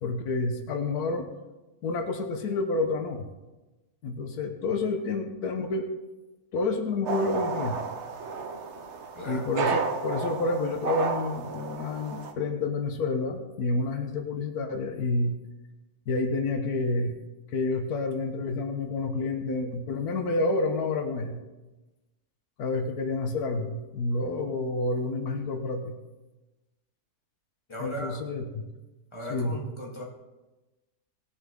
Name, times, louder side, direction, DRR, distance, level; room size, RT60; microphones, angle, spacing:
voice 1, 0.0-1.3 1.8-3.2 4.0-5.9 6.5-7.8 9.3-15.4 16.1-17.1 17.5-21.4 22.6-26.0 27.8-28.6 29.3-29.6, left 3 dB, 85° left, 5 dB, 1.5 m, -29 dB
sound 1, 7.1-12.3, right 5 dB, 55° right, 1.0 m, -32 dB
voice 2, 9.1-9.4 27.7-28.2 29.1-30.0, equal, 20° left, -3 dB, 2.3 m, -37 dB
18.5 x 7.0 x 3.7 m, 1.1 s
omnidirectional pair, 1.6 m